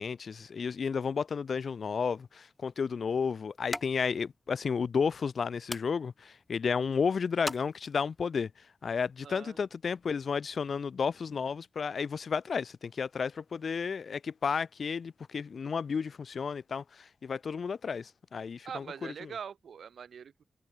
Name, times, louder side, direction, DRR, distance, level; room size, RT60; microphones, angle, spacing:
voice 1, 0.0-8.5 8.8-18.9 19.2-19.3, left 6 dB, 60° left, 0.9 m, -32 dB
sound 1, 2.0-8.3, left 2 dB, 15° left, 1.8 m, -45 dB
voice 2, 9.2-9.6 18.6-20.4, right 7 dB, 80° right, 5.3 m, -43 dB
wide cardioid pair, 135°, 0 cm